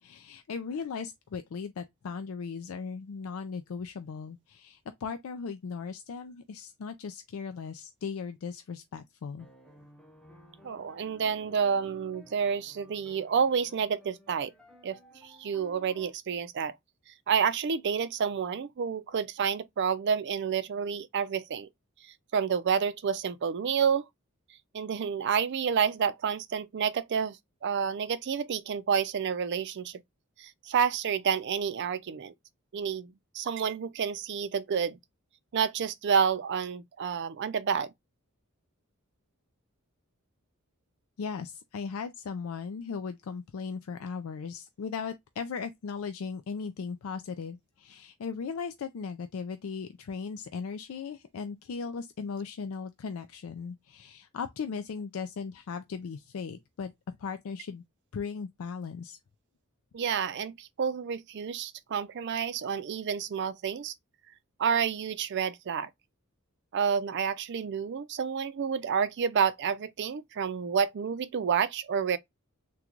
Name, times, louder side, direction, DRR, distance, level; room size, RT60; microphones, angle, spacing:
voice 1, 0.0-9.5 41.2-57.8 58.1-59.2, left 5 dB, 70° left, 0.4 m, -37 dB
sound 1, 9.4-16.1, right 1 dB, 5° left, 0.7 m, -55 dB
voice 2, 10.6-14.5 14.8-15.0 15.2-16.7 17.3-21.7 22.3-24.1 24.7-27.4 27.6-30.0 30.4-32.3 32.7-35.0 35.5-37.9 59.9-63.9 64.6-65.9 66.7-72.2, right 7 dB, 55° right, 0.4 m, -29 dB
3.7 x 2.2 x 2.9 m
head